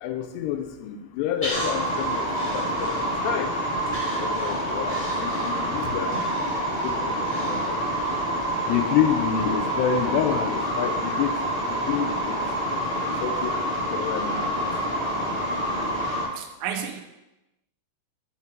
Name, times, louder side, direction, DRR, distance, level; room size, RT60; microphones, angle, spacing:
voice 1, 0.0-2.3 2.5-3.5 4.2-6.2 6.8-7.8 8.7-11.4 11.7-12.4 13.1-14.4, left 9 dB, 85° left, 7 dB, 2.7 m, -28 dB
Breathing, 1.4-3.4 3.9-8.0 8.4-8.5, left 1 dB, 15° left, 1.8 m, -38 dB
sound 1, 1.5-16.2, right 1 dB, 50° left, 0.7 m, -27 dB
voice 2, 16.3-17.0, right 8 dB, 90° right, 3 dB, 2.0 m, -31 dB
5.7 x 4.9 x 4.4 m, 0.96 s
omnidirectional pair, 4.8 m